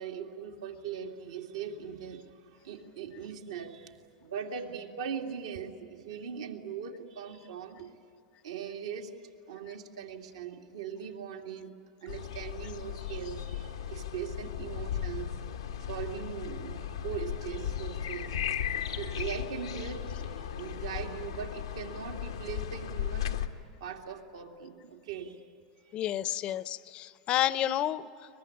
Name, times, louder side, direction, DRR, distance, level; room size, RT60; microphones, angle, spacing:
voice 1, 0.0-7.9 8.4-9.2 9.5-15.3 15.8-18.4 19.0-23.4 23.8-25.5 25.8-26.3, right 7 dB, 80° right, 1 dB, 2.4 m, -40 dB
sound 1, 12.1-23.5, left 9 dB, 85° left, 1.3 m, -36 dB
voice 2, 25.9-28.1, left 12 dB, 40° left, 16 dB, 0.8 m, -30 dB
23.0 x 21.0 x 9.8 m, 2.5 s
hypercardioid pair, 100°, 3 cm